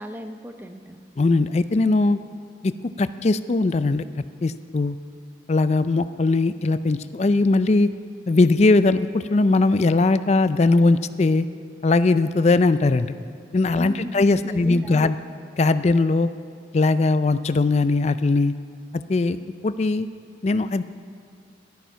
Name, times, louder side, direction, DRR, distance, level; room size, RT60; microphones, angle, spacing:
voice 1, 0.0-1.0 13.8-15.1, equal, 10° right, 6 dB, 0.7 m, -37 dB
voice 2, 1.2-2.2 2.6-2.7 3.0-4.0 4.4-5.0 5.5-7.9 8.3-11.5 11.8-13.1 13.5-15.1 15.6-16.3 16.7-18.5 19.1-19.4 19.6-20.1 20.4-20.8, left 3 dB, 35° left, 13 dB, 0.4 m, -20 dB
14.5 x 12.0 x 5.7 m, 2.2 s
head